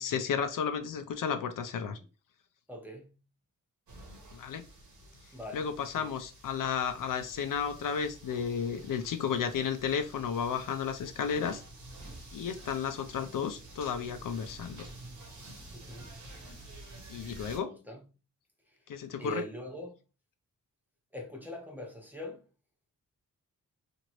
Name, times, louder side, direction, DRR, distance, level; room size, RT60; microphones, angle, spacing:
voice 1, 0.0-2.0 4.3-4.6 5.5-11.6 12.3-14.9 17.1-17.7 18.9-19.4, left 7 dB, 70° left, 0.5 m, -33 dB
voice 2, 2.7-3.1 5.3-5.7 5.9-6.1 9.4-9.5 15.7-16.1 17.5-18.0 19.2-19.9 21.1-22.4, equal, 5° right, 0.7 m, -42 dB
sound 1, 3.9-17.6, right 2 dB, 60° right, 1.1 m, -50 dB
2.9 x 2.6 x 2.9 m
wide cardioid pair, 120°, 34 cm